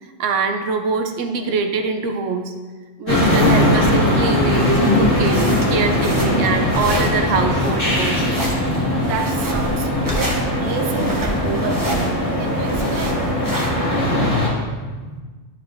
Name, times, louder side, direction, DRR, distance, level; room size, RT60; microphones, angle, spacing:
voice 1, 0.2-2.5 3.0-8.3 13.6-15.2, right 4 dB, 75° right, 5 dB, 0.9 m, -24 dB
sound 1, 3.1-14.5, left 1 dB, 45° left, 2.1 m, -19 dB
sound 2, 4.6-14.1, right 1 dB, 20° right, 0.8 m, -29 dB
voice 2, 9.0-13.3, right 6 dB, 50° right, 4 dB, 0.7 m, -30 dB
11.5 x 4.7 x 2.6 m, 1.4 s
omnidirectional pair, 1.4 m